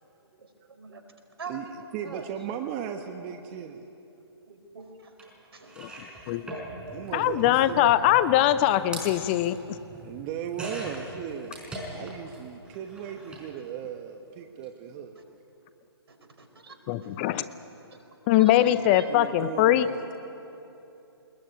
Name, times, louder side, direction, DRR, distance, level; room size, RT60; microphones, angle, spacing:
voice 1, 0.4-1.0 1.4-2.3 4.5-5.1 5.5-6.0 6.5-7.0 7.3-7.4 15.1-15.2 16.1-17.7 18.3-19.1, right 3 dB, 65° right, 6 dB, 4.6 m, -45 dB
voice 2, 1.9-3.8 6.9-7.9 10.0-15.1 18.5-20.1, right 9 dB, 25° right, 5 dB, 1.2 m, -37 dB
sound 1, 5.2-5.3 5.6-12.4 12.6-13.5 14.5-14.6 14.9-15.0, right 1 dB, 5° right, 4.9 m, -41 dB
voice 3, 7.1-9.6 16.9-17.5 18.3-19.9, left 13 dB, 25° left, 14 dB, 0.6 m, -22 dB
21.0 x 21.0 x 9.5 m, 2.9 s
figure-of-eight pair, 135°, 14 cm